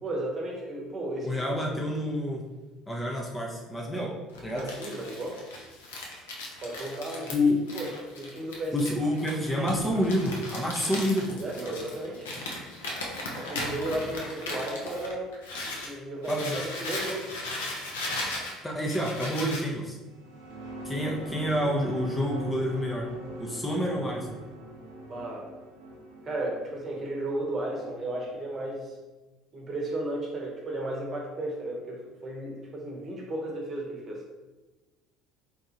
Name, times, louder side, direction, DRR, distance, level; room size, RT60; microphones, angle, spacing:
voice 1, 0.0-1.9 4.5-5.4 6.6-7.3 7.7-8.9 11.3-12.3 13.3-15.3 15.6-16.5 16.8-17.3 25.1-25.5 26.2-29.0 29.5-34.2, right 1 dB, 35° right, -1 dB, 0.9 m, -34 dB
voice 2, 1.2-2.5 2.9-4.7 7.3-7.6 8.7-11.4 16.3-16.6 18.6-20.0 20.8-23.1 23.4-24.3, left 1 dB, 10° left, -2 dB, 0.6 m, -28 dB
Crumpling crinkling, 4.3-15.9 16.2-19.7, left 2 dB, 75° left, 0.6 m, -37 dB
sound 1, 20.0-28.7, equal, 75° right, 0.5 m, -42 dB
3.6 x 2.4 x 2.8 m, 1.2 s
figure-of-eight pair, 60°, 0 cm